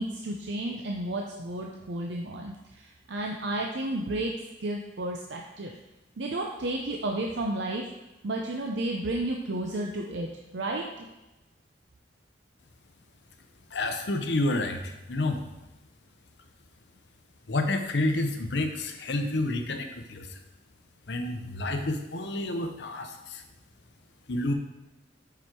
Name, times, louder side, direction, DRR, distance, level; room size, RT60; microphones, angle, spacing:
voice 1, 0.0-2.5 3.1-4.3 4.6-5.7 6.2-7.8 8.2-10.3 10.5-11.1, right 1 dB, 70° right, 1 dB, 0.6 m, -32 dB
voice 2, 13.7-15.4 17.5-20.4 21.1-23.4 24.3-24.5, left 2 dB, 65° left, 6 dB, 0.8 m, -29 dB
7.1 x 5.0 x 4.5 m, 1.0 s
head